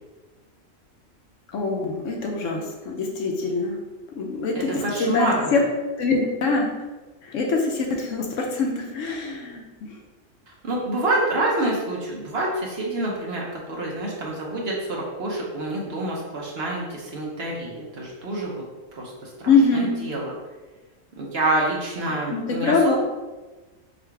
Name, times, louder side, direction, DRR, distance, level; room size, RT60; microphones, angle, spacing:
voice 1, 1.5-3.8 4.1-5.6 6.0-6.8 7.2-9.6 19.4-20.0 22.1-23.0, left 3 dB, 70° left, 1 dB, 1.0 m, -23 dB
voice 2, 4.5-5.6 10.6-18.6 18.9-20.3 21.1-23.0, right 2 dB, 55° right, -3 dB, 1.0 m, -27 dB
3.8 x 2.4 x 4.4 m, 1.2 s
omnidirectional pair, 1.4 m